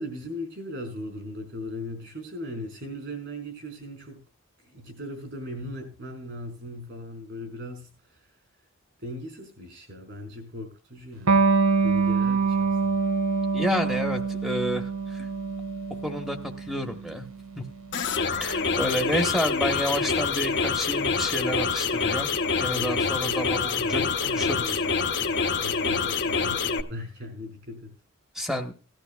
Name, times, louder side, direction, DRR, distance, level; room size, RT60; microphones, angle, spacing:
voice 1, 0.0-4.2 4.6-8.3 9.0-11.6 11.8-12.9 22.7-27.9, left 1 dB, 55° right, 5 dB, 5.0 m, -39 dB
Electric guitar, 11.3-18.4, right 4 dB, 75° right, 0.9 m, -25 dB
voice 2, 13.5-15.3 16.0-17.2 17.6-17.7 18.4-22.3 22.6-24.8 28.3-28.7, equal, ahead, 4 dB, 1.2 m, -30 dB
sound 1, 17.9-26.8, left 5 dB, 55° left, 0.9 m, -26 dB
18.0 x 12.0 x 2.4 m, 0.34 s
head